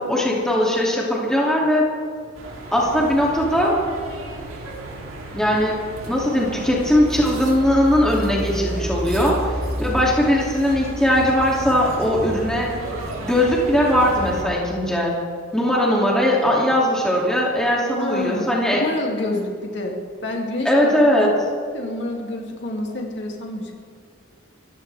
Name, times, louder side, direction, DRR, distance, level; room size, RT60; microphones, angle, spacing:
voice 1, 0.0-1.9 2.7-3.7 5.3-9.4 9.8-12.7 13.2-15.2 15.5-18.8 20.6-21.3, equal, 5° left, -4 dB, 2.6 m, -19 dB
sound 1, 2.3-14.4, right 1 dB, 90° right, 3.1 m, -32 dB
voice 2, 18.0-21.2 21.7-23.8, left 2 dB, 60° left, 0 dB, 2.6 m, -28 dB
26.0 x 15.5 x 3.5 m, 2.2 s
head